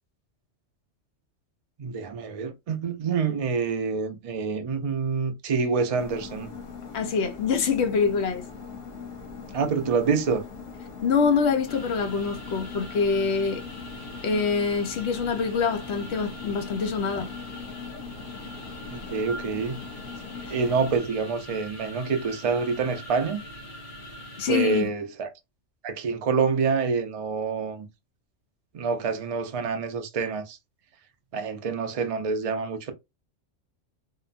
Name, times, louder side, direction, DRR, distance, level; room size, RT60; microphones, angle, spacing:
voice 1, 1.8-6.5 9.5-10.4 18.9-19.8 20.5-23.4 24.5-25.3 25.8-27.9 28.7-30.6 31.3-32.9, right 5 dB, 65° right, 0.3 m, -27 dB
sound 1, 6.0-21.0, left 5 dB, 85° left, 1.2 m, -40 dB
voice 2, 6.9-8.4 11.0-13.6 14.2-17.3 20.5-20.6 24.4-24.9, left 5 dB, 65° left, 0.9 m, -25 dB
sound 2, 11.7-24.9, equal, 45° left, 1.1 m, -42 dB
2.9 x 2.1 x 2.4 m
omnidirectional pair, 1.3 m